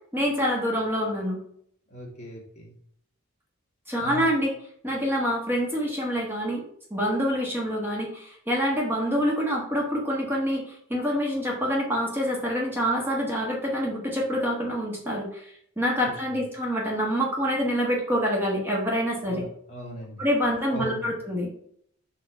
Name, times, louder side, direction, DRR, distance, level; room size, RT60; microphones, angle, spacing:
voice 1, 0.1-1.4 3.9-4.5 4.8-6.6 6.9-19.4 20.2-21.5, equal, 10° right, -3 dB, 1.3 m, -26 dB
voice 2, 1.9-2.7 4.0-4.3 16.0-16.1 19.3-20.2 20.7-21.1, right 1 dB, 35° left, -3 dB, 1.9 m, -38 dB
5.5 x 4.4 x 4.4 m, 0.65 s
head